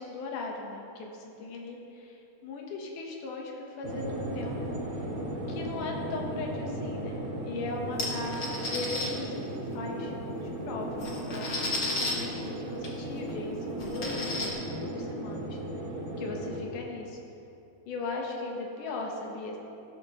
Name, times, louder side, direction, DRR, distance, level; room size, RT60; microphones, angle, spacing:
voice 1, 0.0-5.1 5.5-10.1 10.4-15.6 16.2-17.2 17.9-19.6, left 3 dB, 90° left, 0 dB, 2.7 m, -38 dB
sound 1, 3.8-16.6, right 1 dB, 85° right, 3.2 m, -36 dB
sound 2, 8.0-9.1 10.4-10.5 10.8-12.1 12.8-12.9 13.3-13.4 13.8-14.5, left 2 dB, 40° left, 1.3 m, -33 dB
15.0 x 12.5 x 3.0 m, 2.8 s
omnidirectional pair, 3.5 m